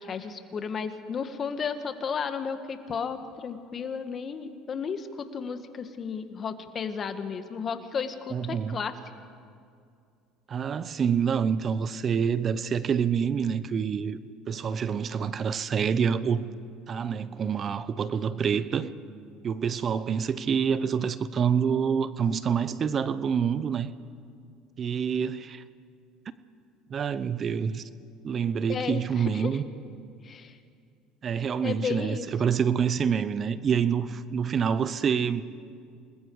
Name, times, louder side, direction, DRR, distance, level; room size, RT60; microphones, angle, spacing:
voice 1, 0.0-8.9 28.7-29.6 30.2-30.6 31.6-32.3, left 6 dB, 40° left, 1.8 m, -33 dB
voice 2, 8.3-8.8 10.5-14.2 14.5-16.4 16.9-18.9 19.4-23.9 24.8-25.6 26.9-27.8 28.2-29.6 31.2-35.4, right 7 dB, 40° right, 0.9 m, -27 dB
28.5 x 20.5 x 4.9 m
supercardioid pair, 85°, 0 cm